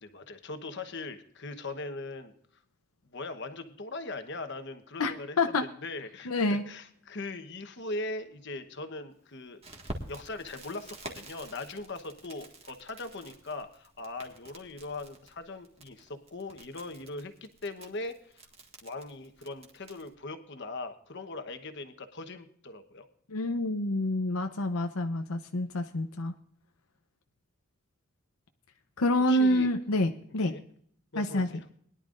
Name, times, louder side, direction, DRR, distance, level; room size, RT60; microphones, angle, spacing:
voice 1, 0.0-2.3 3.1-9.6 10.1-18.4 18.8-23.1 29.2-29.7 30.3-30.6 31.1-31.7, left 2 dB, 55° left, 8 dB, 1.1 m, -40 dB
voice 2, 5.0-5.6 6.3-6.6 23.3-26.3 29.0-30.5 31.2-31.5, left 1 dB, 85° left, 6 dB, 0.8 m, -27 dB
Crackle, 9.6-20.1, right 2 dB, 30° right, 1.7 m, -48 dB
21.5 x 11.0 x 2.5 m, 0.62 s
head